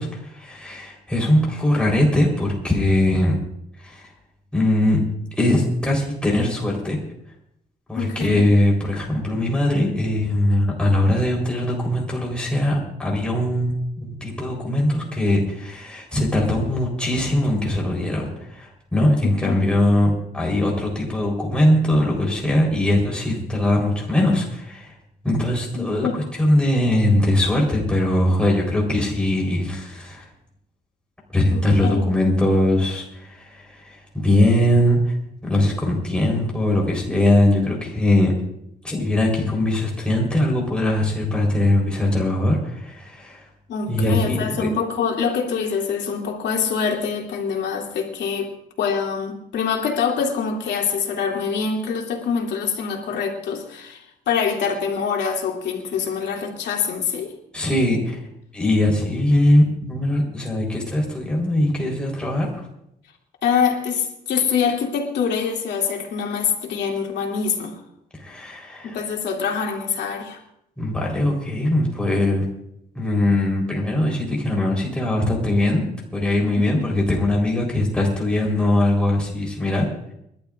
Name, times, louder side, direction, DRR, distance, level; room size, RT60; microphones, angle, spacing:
voice 1, 0.0-3.3 3.8-4.1 4.5-5.0 5.4-7.0 7.9-24.9 25.2-30.2 31.3-35.1 35.4-38.3 38.8-43.4 43.9-44.7 57.5-58.2 58.5-62.6 68.2-69.0 70.8-72.5 72.9-75.8 76.1-79.9, left 1 dB, 5° left, -2 dB, 4.0 m, -21 dB
voice 2, 7.9-8.4 19.2-19.6 25.8-26.2 31.5-32.0 43.7-48.5 48.8-57.3 63.4-67.8 68.8-70.4 76.6-76.9, left 6 dB, 85° left, -1 dB, 2.8 m, -25 dB
29.0 x 12.0 x 2.5 m, 0.77 s
cardioid pair, 150°, 18 cm